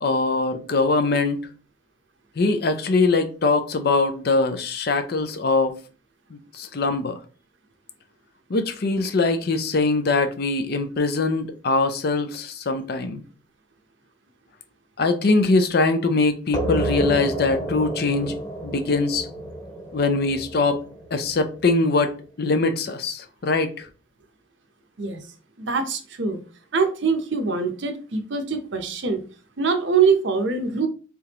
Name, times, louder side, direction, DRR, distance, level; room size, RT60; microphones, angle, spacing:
voice 1, 0.0-1.4 2.4-5.8 6.3-7.1 8.5-13.2 15.0-18.3 18.6-19.3 19.9-20.8 21.1-23.9, left 3 dB, 50° left, 0.5 m, -22 dB
sound 1, 16.5-21.9, right 1 dB, 20° left, 1.2 m, -30 dB
voice 2, 25.6-26.4 26.7-29.2 29.6-30.9, right 5 dB, 60° right, 0.7 m, -23 dB
3.7 x 3.4 x 2.9 m
head